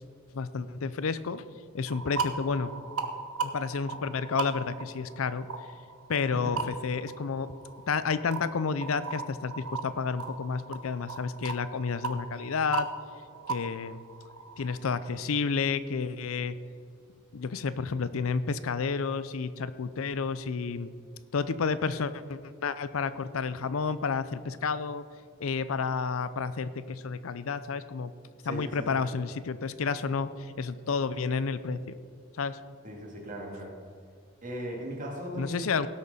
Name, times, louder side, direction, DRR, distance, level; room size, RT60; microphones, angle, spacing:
voice 1, 0.3-1.4 1.7-2.7 3.4-5.5 6.1-7.5 7.9-12.9 13.5-14.0 14.6-16.6 17.3-20.9 21.3-25.0 25.4-28.1 28.4-31.9 32.4-32.6 35.3-35.9, left 5 dB, 70° left, 14 dB, 0.5 m, -31 dB
sound 1, 1.9-15.2, right 4 dB, 85° right, 1.0 m, -38 dB
voice 2, 28.4-29.0 32.8-33.8 34.4-35.7, right 1 dB, 35° right, -1 dB, 2.4 m, -38 dB
17.0 x 6.5 x 5.5 m, 2.2 s
head